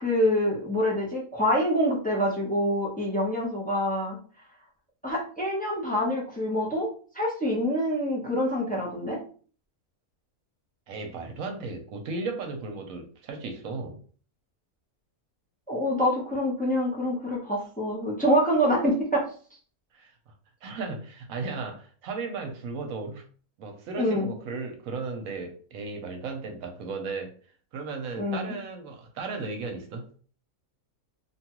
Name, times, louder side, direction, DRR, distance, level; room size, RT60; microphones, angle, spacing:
voice 1, 0.0-4.2 5.0-6.9 7.1-9.2 15.7-19.3 24.0-24.3 28.2-28.5, equal, 10° left, -4 dB, 0.4 m, -26 dB
voice 2, 10.9-14.0 19.9-20.3 20.6-23.3 23.6-27.3 27.7-30.0, right 4 dB, 70° right, 4 dB, 1.0 m, -35 dB
2.8 x 2.3 x 2.9 m, 0.42 s
omnidirectional pair, 1.5 m